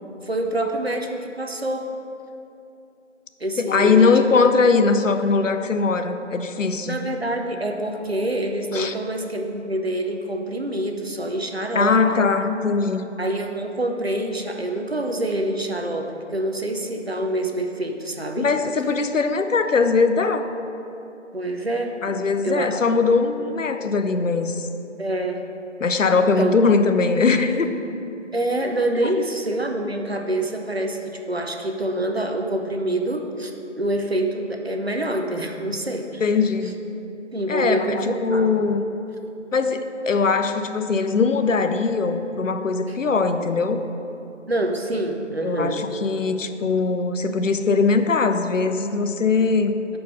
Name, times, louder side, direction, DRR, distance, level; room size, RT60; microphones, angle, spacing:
voice 1, 0.2-1.8 3.4-4.1 6.9-11.9 13.2-18.5 21.3-22.7 25.0-25.4 26.1-26.5 28.3-33.5 33.8-36.2 37.3-38.5 42.9-43.0 44.5-45.8, right 1 dB, 55° right, 3 dB, 0.6 m, -26 dB
voice 2, 3.6-7.0 8.7-8.9 11.7-13.1 18.4-20.5 22.0-24.7 25.8-27.7 36.2-36.8 37.5-38.8 39.5-43.8 45.4-49.8, left 4 dB, 85° left, 8 dB, 0.6 m, -21 dB
5.6 x 4.6 x 6.3 m, 2.8 s
figure-of-eight pair, 180°, 37 cm